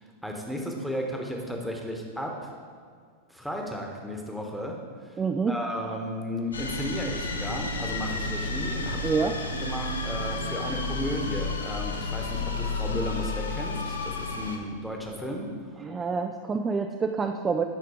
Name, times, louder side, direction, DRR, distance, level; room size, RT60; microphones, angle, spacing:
voice 1, 0.0-2.5 3.3-4.8 5.0-5.2 5.5-9.2 9.5-15.5, equal, ahead, 1 dB, 1.2 m, -34 dB
voice 2, 5.2-5.6 9.0-9.3 15.8-17.6, right 5 dB, 20° right, 5 dB, 0.4 m, -27 dB
sound 1, 6.5-14.6, left 3 dB, 75° left, 0.8 m, -31 dB
10.5 x 4.4 x 4.9 m, 2.1 s
figure-of-eight pair, 90°, 0 cm